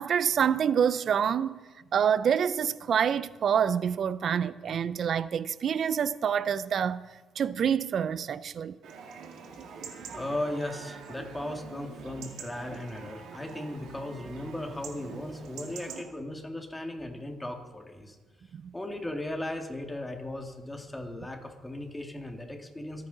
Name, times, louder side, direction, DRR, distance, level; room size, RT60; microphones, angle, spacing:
voice 1, 0.0-1.6 1.9-7.0 7.4-8.8 18.5-18.7, right 8 dB, 60° right, 0.5 m, -27 dB
Chatter / Livestock farm animals working animals / Chirp tweet, 8.8-16.0, right 5 dB, 80° right, 2.1 m, -44 dB
voice 2, 10.1-18.2 18.7-23.1, left 1 dB, 10° left, 2.0 m, -37 dB
24.5 x 9.5 x 4.0 m
cardioid pair, 90°, 0 cm